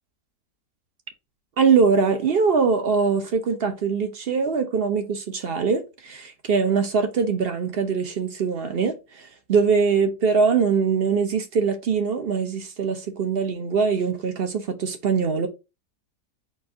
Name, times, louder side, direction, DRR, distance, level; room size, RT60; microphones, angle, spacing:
voice 1, 1.6-15.5, right 5 dB, 55° right, 0.7 m, -22 dB
4.2 x 2.6 x 4.8 m
omnidirectional pair, 1.7 m